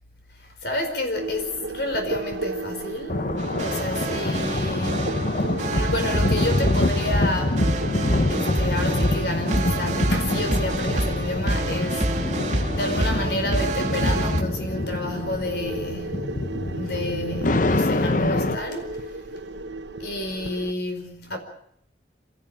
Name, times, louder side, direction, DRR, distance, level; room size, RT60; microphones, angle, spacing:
voice 1, 0.4-3.2 3.6-5.0 5.7-7.7 8.3-12.4 12.7-16.4 16.7-19.1 20.0-21.4, left 1 dB, 65° left, 4.9 m, -30 dB
sound 1, 1.2-20.7, right 2 dB, 85° right, 1.1 m, -36 dB
sound 2, 3.1-18.6, left 2 dB, 50° left, 0.9 m, -26 dB
sound 3, 3.4-14.4, right 1 dB, 45° right, 2.8 m, -27 dB
28.0 x 14.0 x 8.8 m
head